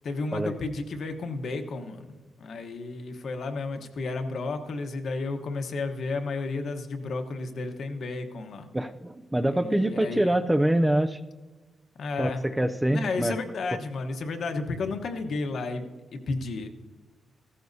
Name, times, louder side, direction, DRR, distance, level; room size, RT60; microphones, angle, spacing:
voice 1, 0.0-8.7 9.5-10.3 11.9-12.5 12.9-16.7, left 3 dB, 55° left, 6 dB, 1.0 m, -32 dB
voice 2, 8.7-11.2 12.2-12.3 12.6-13.3, right 1 dB, 5° right, 9 dB, 0.3 m, -24 dB
15.5 x 14.0 x 2.7 m, 1.2 s
wide cardioid pair, 165°, 0 cm